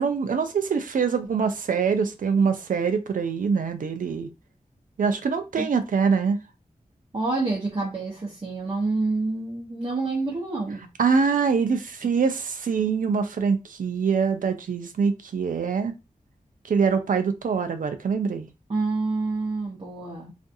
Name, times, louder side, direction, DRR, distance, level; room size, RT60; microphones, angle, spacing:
voice 1, 0.0-4.3 5.0-6.4 11.0-15.9 16.7-18.5, right 5 dB, 75° right, 0.5 m, -24 dB
voice 2, 7.1-10.9 18.7-20.3, right 3 dB, 40° right, 0.8 m, -28 dB
2.5 x 2.3 x 2.6 m
wide cardioid pair, 65°, 14 cm